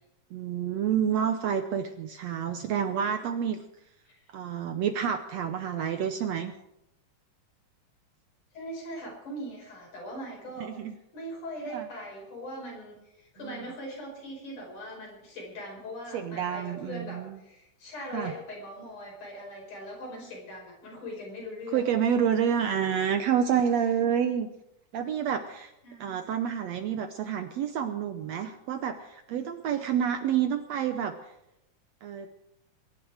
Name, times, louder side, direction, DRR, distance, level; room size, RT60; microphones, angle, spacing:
voice 1, 0.3-3.6 4.3-6.5 10.6-10.9 11.7-11.9 13.4-13.6 16.1-17.4 18.1-18.3 21.7-24.5 24.9-25.7 26.0-31.3 32.0-32.3, right 8 dB, 70° right, 8 dB, 1.7 m, -28 dB
voice 2, 8.5-10.7 11.1-21.8 25.8-26.3, equal, 70° left, -1 dB, 6.8 m, -41 dB
23.0 x 11.0 x 5.0 m, 0.88 s
omnidirectional pair, 3.7 m